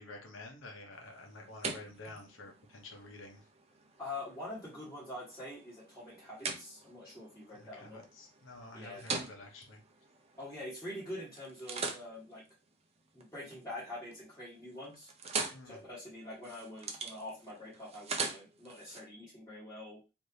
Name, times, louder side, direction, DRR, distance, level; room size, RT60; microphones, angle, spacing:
voice 1, 0.0-3.4 7.6-9.8 15.5-15.8, left 2 dB, 85° left, 3 dB, 0.8 m, -50 dB
sound 1, 0.9-10.9 11.4-13.6 14.0-14.4 14.7-19.0, right 4 dB, 35° right, 0.5 m, -43 dB
voice 2, 4.0-8.0 8.7-9.0 10.3-12.4 13.1-15.1 15.6-20.0, left 1 dB, 15° left, -10 dB, 1.4 m, -45 dB
3.2 x 2.6 x 2.7 m, 0.29 s
head